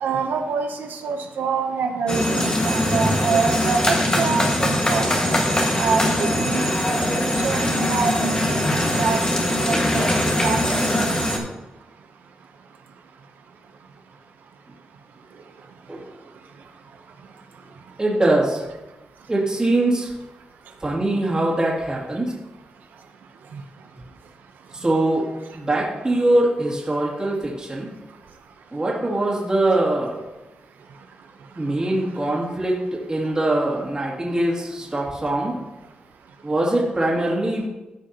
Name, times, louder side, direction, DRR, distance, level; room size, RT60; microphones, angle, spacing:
voice 1, 0.0-5.1 5.8-8.6 9.0-10.1 10.4-11.2, right 5 dB, 90° right, 4 dB, 0.7 m, -26 dB
sound 1, 2.1-11.4, left 1 dB, 25° left, 1.5 m, -21 dB
voice 2, 18.0-18.6 19.3-20.1 20.8-22.3 24.7-25.2 25.5-27.9 28.7-30.2 31.6-32.8 33.1-35.6 36.4-37.7, right 1 dB, 25° right, -4 dB, 2.3 m, -22 dB
14.0 x 5.1 x 2.8 m, 1.1 s
cardioid pair, 70°, 3 cm